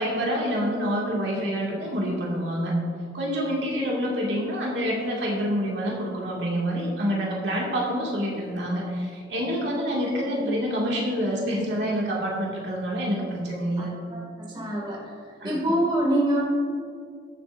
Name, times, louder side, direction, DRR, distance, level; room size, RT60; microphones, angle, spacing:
voice 1, 0.0-2.7 3.1-13.9 15.4-15.6, equal, 65° right, -3 dB, 2.1 m, -27 dB
voice 2, 10.3-10.6 13.8-15.1 15.4-16.4, right 1 dB, 25° right, -4 dB, 2.2 m, -26 dB
22.5 x 7.6 x 2.6 m, 2.2 s
head